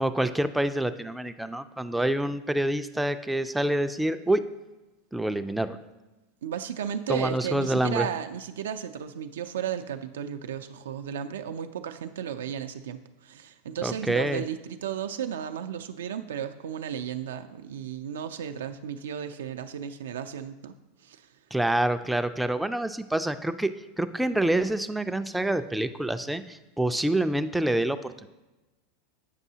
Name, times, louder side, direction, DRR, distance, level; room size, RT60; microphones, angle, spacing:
voice 1, 0.0-4.4 5.1-5.8 7.1-8.1 13.8-14.4 21.5-23.7 24.0-28.3, right 1 dB, 5° right, 10 dB, 0.3 m, -27 dB
voice 2, 6.4-20.8 21.0-21.3, right 8 dB, 85° right, 8 dB, 0.3 m, -34 dB
8.1 x 5.4 x 2.8 m, 1.1 s
hypercardioid pair, 110°, 0 cm